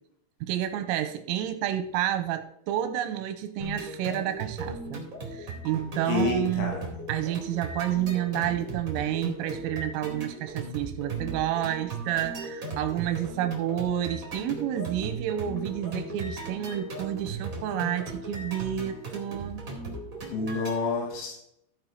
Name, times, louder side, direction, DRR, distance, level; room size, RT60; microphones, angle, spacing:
voice 1, 0.4-6.7 7.1-19.6, right 11 dB, 90° right, 8 dB, 3.3 m, -30 dB
sound 1, 3.6-20.7, right 2 dB, 45° right, 1.0 m, -37 dB
voice 2, 6.1-6.9 20.3-21.3, left 3 dB, 85° left, 0 dB, 4.7 m, -28 dB
14.5 x 5.2 x 4.5 m, 0.74 s
omnidirectional pair, 5.9 m